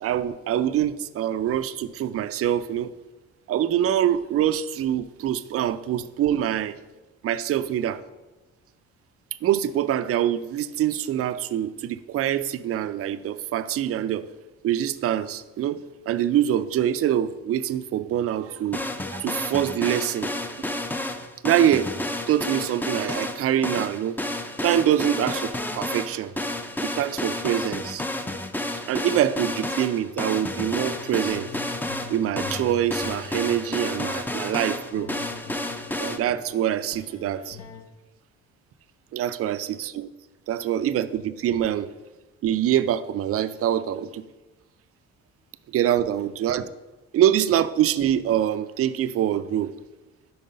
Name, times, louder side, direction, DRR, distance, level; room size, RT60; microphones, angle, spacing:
voice 1, 0.0-2.9 3.5-6.8 7.2-8.0 9.4-14.3 14.6-18.8 19.1-20.3 21.4-21.9 22.3-24.2 24.6-26.3 26.8-28.0 28.9-31.5 32.1-35.1 36.0-37.6 39.1-40.1 40.5-41.9 42.4-44.2 45.7-46.7 47.1-49.7, right 11 dB, 50° right, 13 dB, 0.4 m, -24 dB
sound 1, 18.7-36.2, left 1 dB, 5° left, 0.5 m, -31 dB
sound 2, 30.0-34.5 34.9-37.8, left 5 dB, 60° left, 0.8 m, -43 dB
5.4 x 4.7 x 5.2 m, 1.1 s
cardioid pair, 90°, 30 cm